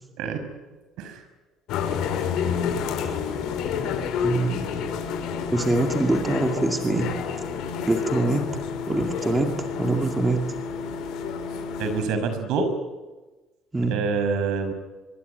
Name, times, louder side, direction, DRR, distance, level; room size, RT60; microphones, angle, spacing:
sound 1, 1.7-12.0, left 6 dB, 65° left, 5.2 m, -29 dB
voice 1, 4.2-4.6 5.5-7.1 7.9-8.4 8.9-10.4 13.7-14.0, right 2 dB, 10° right, 4 dB, 2.1 m, -24 dB
voice 2, 11.8-12.7 13.9-14.7, right 4 dB, 70° right, 9 dB, 5.8 m, -26 dB
25.0 x 22.5 x 9.3 m, 1.2 s
cardioid pair, 180°, 0 cm